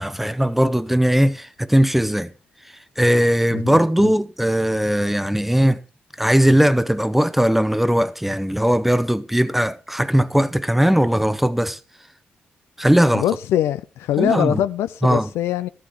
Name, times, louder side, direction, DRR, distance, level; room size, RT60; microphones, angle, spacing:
voice 1, 0.0-2.3 3.0-5.8 6.2-11.8 12.8-13.2 14.2-14.6 15.0-15.3, equal, 5° right, 0.8 m, -19 dB
voice 2, 3.5-4.1 13.1-15.7, left 11 dB, 80° left, 0.5 m, -23 dB
13.5 x 11.5 x 3.2 m
supercardioid pair, 50°, 4 cm